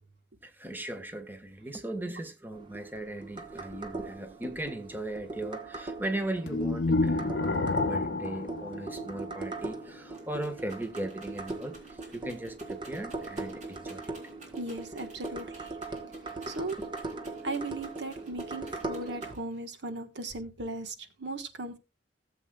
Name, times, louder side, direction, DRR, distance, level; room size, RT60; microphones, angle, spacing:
voice 1, 0.4-14.1 16.8-16.9, right 1 dB, 10° right, 1.2 m, -38 dB
sound 1, 2.5-19.3, right 3 dB, 30° right, 1.2 m, -40 dB
sound 2, 6.5-9.6, left 3 dB, 65° left, 0.6 m, -29 dB
Rattle, 9.7-19.7 20.3-20.9, right 2 dB, 45° right, 3.9 m, -55 dB
voice 2, 14.5-15.8 16.5-16.8 17.4-21.8, right 2 dB, 80° right, 1.3 m, -37 dB
17.0 x 7.8 x 2.3 m
head